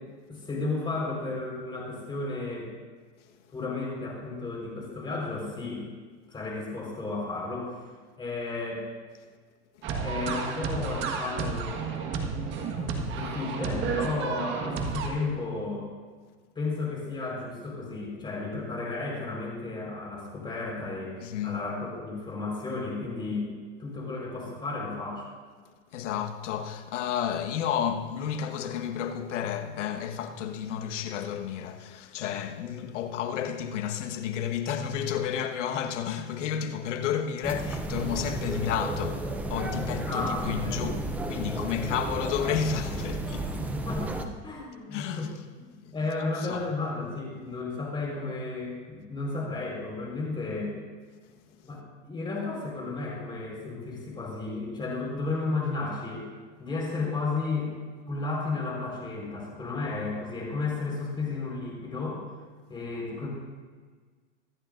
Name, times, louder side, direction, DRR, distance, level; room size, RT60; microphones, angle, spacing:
voice 1, 0.3-2.7 3.5-5.8 6.3-7.8 8.2-8.8 10.0-11.9 13.1-15.9 16.5-21.2 21.4-23.5 23.8-25.3 40.1-41.0 43.6-45.3 45.6-50.8 51.6-56.3 56.6-57.7 58.1-62.2 62.7-63.3, left 3 dB, 15° left, 4.4 m, -33 dB
sound 1, 9.8-15.1, right 5 dB, 30° right, 1.6 m, -31 dB
voice 2, 21.2-21.6 25.9-39.2 39.5-41.0 41.2-43.6 44.9-45.3 45.9-46.0 46.4-46.6, left 8 dB, 75° left, 1.5 m, -31 dB
sound 2, 37.4-44.2, right 2 dB, 5° right, 0.4 m, -33 dB
25.0 x 11.5 x 2.6 m
supercardioid pair, 155°, 36 cm